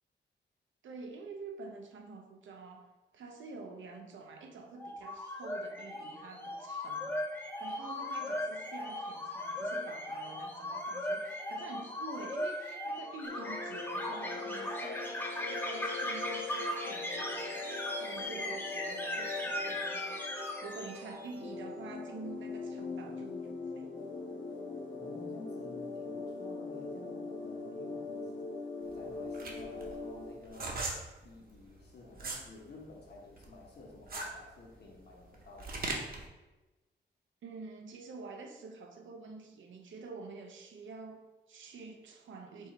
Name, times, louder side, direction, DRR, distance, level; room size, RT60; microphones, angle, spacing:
voice 1, 0.8-20.3 20.6-24.0 37.4-42.7, right 3 dB, 85° right, 4 dB, 0.6 m, -48 dB
sound 1, 4.8-21.3, left 1 dB, 10° left, 0.6 m, -38 dB
sound 2, 13.2-30.3, left 3 dB, 85° left, 1.1 m, -41 dB
voice 2, 24.9-28.4 28.9-30.9 31.2-35.8, left 3 dB, 60° left, -2 dB, 1.2 m, -52 dB
sound 3, 28.8-32.5 32.9-36.3, right 3 dB, 50° right, 0.8 m, -39 dB
4.6 x 2.8 x 4.1 m, 1.1 s
wide cardioid pair, 115°, 19 cm